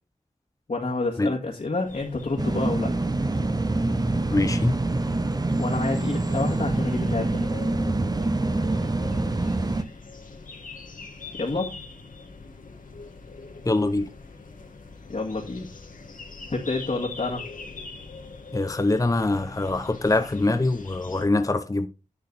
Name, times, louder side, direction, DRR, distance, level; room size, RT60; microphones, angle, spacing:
voice 1, 0.7-2.9 5.6-7.4 11.3-11.8 15.1-15.7 16.5-17.4, left 3 dB, 65° left, 2.0 m, -28 dB
sound 1, 1.8-21.2, left 4 dB, 85° left, 1.8 m, -43 dB
sound 2, 2.4-9.8, right 2 dB, 30° right, 0.8 m, -25 dB
voice 2, 4.3-4.8 13.6-14.1 18.5-21.9, left 2 dB, 25° left, 0.7 m, -24 dB
10.5 x 6.3 x 4.0 m
wide cardioid pair, 70°, 13 cm